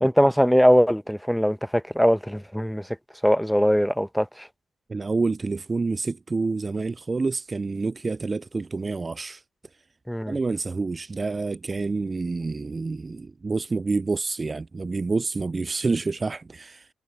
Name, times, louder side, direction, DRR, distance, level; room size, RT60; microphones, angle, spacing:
voice 1, 0.0-2.9 3.2-4.5 10.1-10.4, equal, ahead, 0.8 m, -21 dB
voice 2, 4.9-9.4 10.3-16.9, right 3 dB, 35° right, 0.3 m, -28 dB
hypercardioid pair, 50°, 0 cm